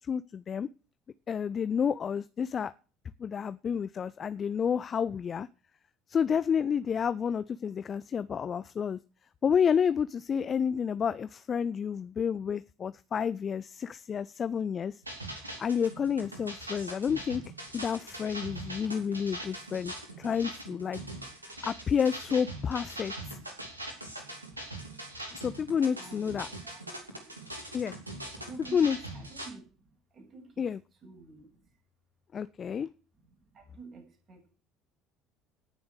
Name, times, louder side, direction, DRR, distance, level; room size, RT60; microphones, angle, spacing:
voice 1, 0.1-0.7 1.3-2.7 3.2-5.5 6.1-9.0 9.4-15.0 15.6-17.4 17.7-21.0 21.6-23.1 25.3-26.5 27.7-27.9 28.7-29.0 30.6-30.8 32.3-32.9, left 7 dB, 35° left, 16 dB, 0.6 m, -30 dB
sound 1, 15.0-29.5, right 1 dB, 85° right, 2.9 m, -42 dB
voice 2, 21.0-21.9 22.5-24.0 26.0-27.5 28.2-31.8 33.1-34.5, right 3 dB, 40° right, 3 dB, 7.3 m, -53 dB
18.5 x 7.2 x 6.4 m, 0.37 s
figure-of-eight pair, 60°, 0 cm